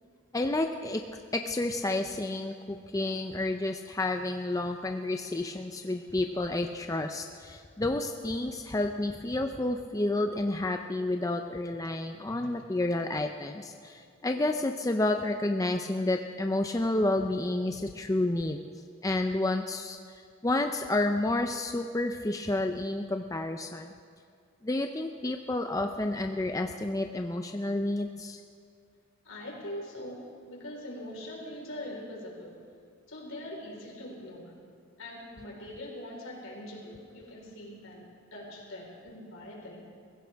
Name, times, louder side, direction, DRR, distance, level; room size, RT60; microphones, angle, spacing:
voice 1, 0.3-18.6 19.0-20.0 20.4-23.9 24.6-28.4, left 2 dB, 15° left, 5 dB, 0.4 m, -30 dB
voice 2, 29.2-32.6 33.1-34.5 35.0-39.9, left 1 dB, 75° left, -2 dB, 4.2 m, -42 dB
23.0 x 16.0 x 3.5 m, 2.2 s
head